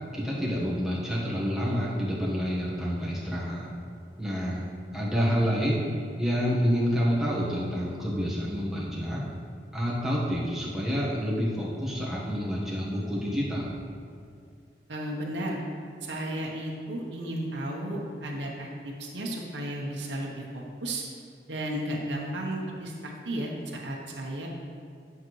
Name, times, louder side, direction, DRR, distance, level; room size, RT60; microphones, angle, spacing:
voice 1, 0.1-3.7 4.2-4.6 4.9-5.8 6.2-9.2 9.7-13.7, equal, ahead, -6 dB, 1.3 m, -28 dB
voice 2, 14.9-15.6 16.0-21.0 21.5-24.5, right 1 dB, 85° right, -1 dB, 1.0 m, -34 dB
10.0 x 5.8 x 3.2 m, 2.3 s
head